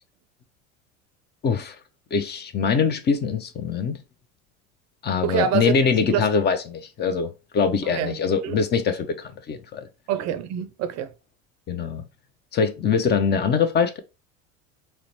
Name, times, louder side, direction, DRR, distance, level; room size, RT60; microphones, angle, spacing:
voice 1, 1.4-1.8 2.1-4.0 5.0-9.9 11.7-12.0 12.5-14.0, left 6 dB, 25° left, 0.5 m, -23 dB
voice 2, 5.2-5.8 6.1-6.3 7.8-8.2 8.4-8.6 10.1-11.1, right 10 dB, 40° right, 0.5 m, -26 dB
3.7 x 2.1 x 3.0 m
hypercardioid pair, 75°, 42 cm